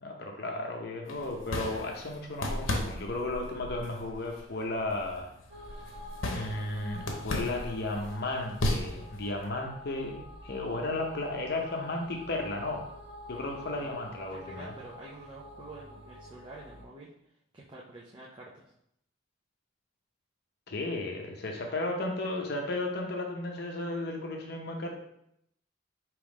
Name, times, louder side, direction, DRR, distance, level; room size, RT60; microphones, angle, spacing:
voice 1, 0.0-5.3 6.3-12.9 13.3-14.8 20.7-24.9, left 2 dB, 55° left, 1 dB, 0.7 m, -34 dB
sound 1, 1.1-9.5, left 1 dB, 85° left, 0.8 m, -36 dB
sound 2, 5.5-16.8, left 1 dB, 55° right, 0.8 m, -48 dB
voice 2, 13.3-13.9 14.3-17.1 17.5-18.7, right 2 dB, 25° right, -5 dB, 0.5 m, -48 dB
3.5 x 3.0 x 4.8 m, 0.75 s
head